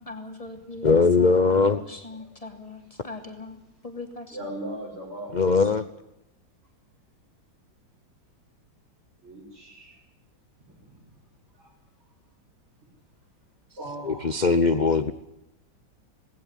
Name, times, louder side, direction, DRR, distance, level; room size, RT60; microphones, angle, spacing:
voice 1, 0.0-4.4 5.6-5.7, left 2 dB, 15° left, 5 dB, 2.9 m, -41 dB
voice 2, 0.8-1.8 5.3-5.9 14.0-15.1, left 4 dB, 50° left, 11 dB, 0.5 m, -20 dB
voice 3, 4.3-5.3 9.2-10.0 10.6-11.1 11.5-11.7 13.8-14.4, right 1 dB, 35° right, -5 dB, 7.3 m, -39 dB
19.0 x 18.0 x 9.9 m, 0.84 s
omnidirectional pair, 2.1 m